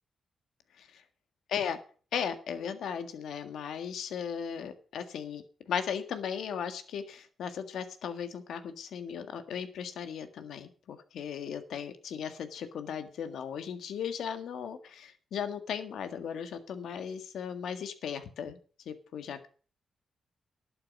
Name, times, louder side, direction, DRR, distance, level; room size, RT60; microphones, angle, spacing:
voice 1, 2.1-18.6 18.8-19.5, left 7 dB, 85° left, 9 dB, 1.7 m, -37 dB
11.5 x 8.8 x 6.1 m, 0.40 s
cardioid pair, 100°, 0 cm